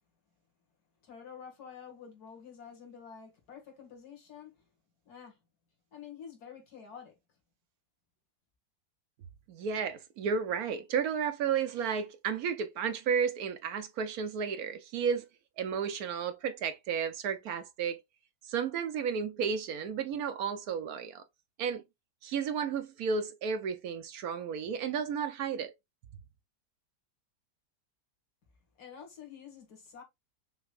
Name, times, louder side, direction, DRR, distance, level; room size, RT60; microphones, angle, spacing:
voice 1, 1.0-4.5 5.1-5.4 5.9-7.1 28.8-30.0, left 7 dB, 70° left, 2.3 m, -49 dB
voice 2, 9.5-15.2 15.6-18.0 18.5-21.2 21.6-21.8 22.2-25.7, right 6 dB, 70° right, 1.1 m, -32 dB
5.9 x 3.1 x 2.4 m
omnidirectional pair, 1.7 m